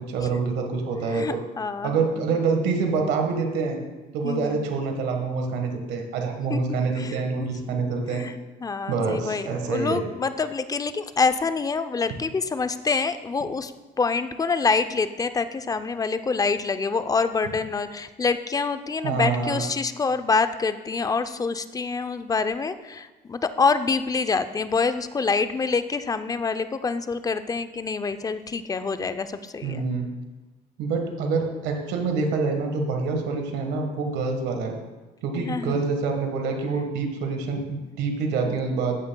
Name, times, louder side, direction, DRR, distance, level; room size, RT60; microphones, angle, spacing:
voice 1, 0.0-1.4 1.8-3.8 4.1-8.3 8.9-10.0 19.0-19.6 29.6-30.1 30.8-34.7 35.2-39.0, right 4 dB, 85° right, 3 dB, 1.4 m, -26 dB
voice 2, 1.1-2.3 4.2-4.7 6.5-6.6 6.9-7.2 8.1-8.4 8.6-13.7 14.0-29.9 35.3-35.8 38.5-38.6, left 4 dB, 20° left, 11 dB, 0.5 m, -26 dB
14.0 x 9.1 x 2.3 m, 1.2 s
cardioid pair, 110°, 17 cm